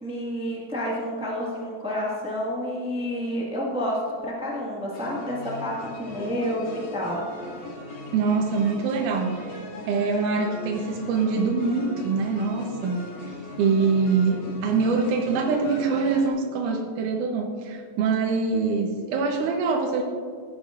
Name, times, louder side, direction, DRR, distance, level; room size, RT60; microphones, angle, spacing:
voice 1, 0.0-7.2 7.5-7.6, equal, 5° right, -5 dB, 0.5 m, -29 dB
sound 1, 4.9-16.3, left 1 dB, 75° left, 3.5 m, -39 dB
voice 2, 8.1-9.6 9.9-13.0 13.3-20.0, right 4 dB, 85° right, 1 dB, 2.3 m, -24 dB
16.5 x 10.0 x 2.5 m, 2.1 s
omnidirectional pair, 3.5 m